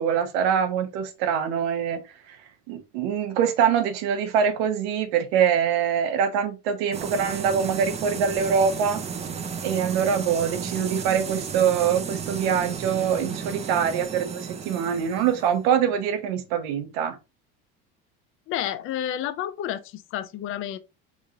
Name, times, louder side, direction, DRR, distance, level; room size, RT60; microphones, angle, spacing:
voice 1, 0.0-2.0 2.3-2.4 2.7-9.0 9.6-17.2, right 7 dB, 85° right, 0.8 m, -24 dB
sound 1, 6.9-16.5, right 6 dB, 20° right, 0.4 m, -34 dB
voice 2, 18.5-20.8, left 11 dB, 45° left, 0.5 m, -30 dB
3.7 x 3.0 x 2.7 m
supercardioid pair, 110°, 29 cm